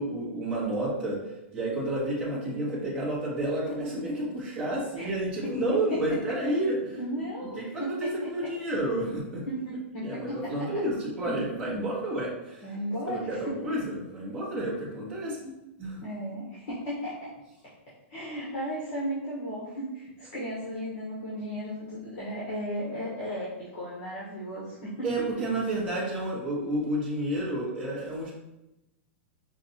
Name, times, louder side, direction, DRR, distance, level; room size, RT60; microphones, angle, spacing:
voice 1, 0.0-7.0 7.6-7.9 8.2-9.4 10.0-12.7 13.1-15.5 15.8-16.0 25.0-28.3, right 1 dB, 15° right, -7 dB, 1.1 m, -30 dB
voice 2, 5.4-6.5 7.0-8.5 9.5-10.7 12.6-13.7 16.0-17.3 18.1-25.3 25.6-26.0, equal, 45° left, -7 dB, 1.2 m, -35 dB
5.3 x 2.5 x 2.8 m, 0.94 s
supercardioid pair, 170°, 7 cm